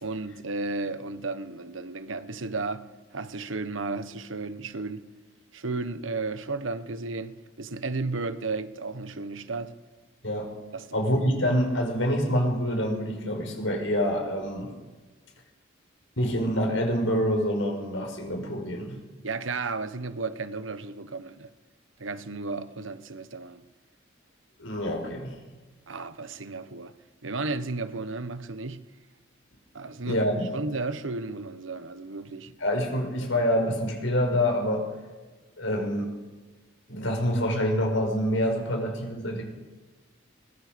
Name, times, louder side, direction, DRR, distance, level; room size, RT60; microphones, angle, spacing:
voice 1, 0.0-5.1 5.5-9.8 10.7-10.9 19.2-21.5 22.0-23.6 25.9-26.9 27.2-28.9 29.7-30.3 30.5-32.5, right 3 dB, 85° right, 1.2 m, -33 dB
voice 2, 10.9-14.7 16.2-19.0 24.6-25.4 30.1-30.5 32.6-34.8 35.6-36.1 36.9-39.4, equal, 80° left, 5.4 m, -26 dB
22.5 x 21.5 x 5.3 m
head